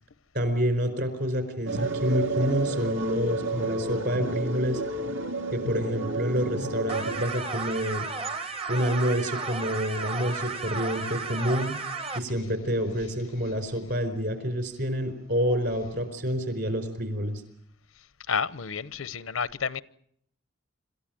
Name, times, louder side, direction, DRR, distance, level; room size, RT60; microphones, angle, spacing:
voice 1, 0.3-4.8 5.5-8.1 8.7-11.8 12.1-17.4, equal, 50° right, 4.5 m, -28 dB
sound 1, 1.7-7.2, right 2 dB, 70° right, 2.2 m, -31 dB
sound 2, 6.9-12.2, right 4 dB, 25° right, 1.0 m, -34 dB
voice 2, 18.3-19.8, left 6 dB, 80° left, 0.8 m, -30 dB
26.5 x 14.0 x 9.1 m
head